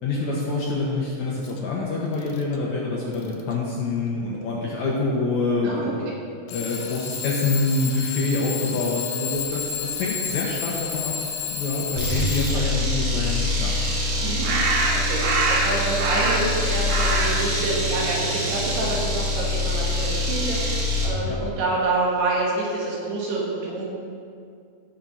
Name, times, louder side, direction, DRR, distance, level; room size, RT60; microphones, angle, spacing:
voice 1, 0.0-5.9 6.5-11.1 11.5-13.7 21.3-21.4, left 3 dB, 70° left, -4 dB, 1.9 m, -26 dB
Alarm / Clock, 1.4-1.6 2.1-2.6 3.1-3.5 4.4-4.5 6.5-12.9, left 8 dB, 90° left, 2.7 m, -31 dB
sound 1, 12.0-21.2, left 1 dB, 45° right, 1.8 m, -25 dB
voice 2, 14.2-14.5 14.9-15.2 15.5-23.8, right 2 dB, 85° right, -4 dB, 4.1 m, -27 dB
sound 2, 14.4-16.6 16.9-19.0, right 2 dB, 65° right, 2.2 m, -25 dB
17.0 x 6.1 x 4.0 m, 2.3 s
omnidirectional pair, 4.6 m